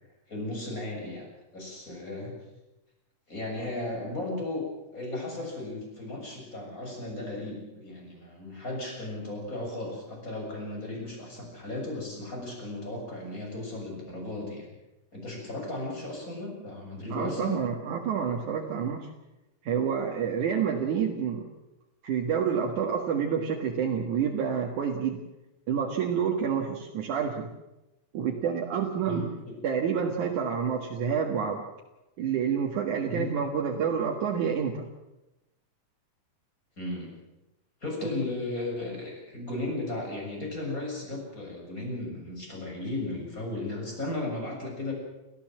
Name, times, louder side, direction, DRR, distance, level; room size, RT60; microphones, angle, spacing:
voice 1, 0.3-1.3 1.5-2.3 3.3-14.7 15.1-17.6 29.0-29.3 33.1-33.3 36.8-37.1 37.8-44.9, left 2 dB, 25° left, 0 dB, 7.3 m, -35 dB
voice 2, 17.1-19.1 19.6-21.5 22.0-25.2 25.7-27.5 28.1-29.2 29.6-31.6 32.2-34.9, right 7 dB, 80° right, 0 dB, 3.2 m, -28 dB
29.5 x 14.5 x 7.6 m, 0.99 s
omnidirectional pair, 3.4 m